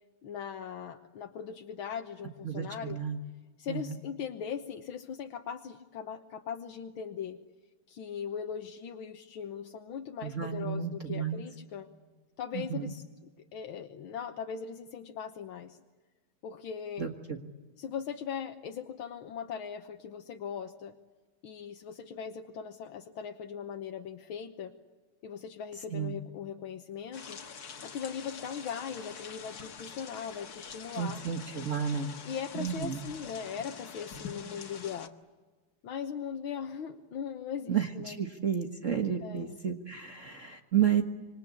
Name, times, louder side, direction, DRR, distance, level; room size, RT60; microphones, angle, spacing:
voice 1, 0.2-3.0 3.6-7.4 7.9-11.9 12.4-15.8 16.4-17.1 17.8-21.0 21.4-24.7 25.2-27.4 27.8-31.2 32.3-35.1 35.8-38.2 39.2-39.6, left 7 dB, 80° left, 6 dB, 1.9 m, -39 dB
voice 2, 2.4-3.2 3.7-4.0 10.2-11.4 12.5-12.9 17.0-17.4 25.9-26.2 30.9-32.1 32.5-33.0 37.7-41.0, right 8 dB, 40° right, 4 dB, 1.7 m, -32 dB
sound 1, 27.1-35.1, left 6 dB, 50° left, 1.9 m, -45 dB
26.5 x 26.0 x 8.5 m, 1.3 s
omnidirectional pair, 2.3 m